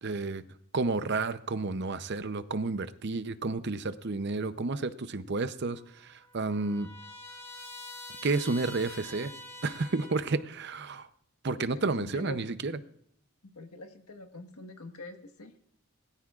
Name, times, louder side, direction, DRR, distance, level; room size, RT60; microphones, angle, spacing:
voice 1, 0.0-0.4 0.7-6.9 8.2-9.3 9.6-11.1 11.4-12.8, right 3 dB, 50° right, 12 dB, 0.6 m, -31 dB
Trumpet, 5.7-10.4, left 2 dB, 10° left, 1.7 m, -46 dB
voice 2, 11.7-12.4 13.5-15.5, left 1 dB, 90° left, 5 dB, 1.5 m, -44 dB
21.0 x 14.5 x 2.4 m, 0.67 s
head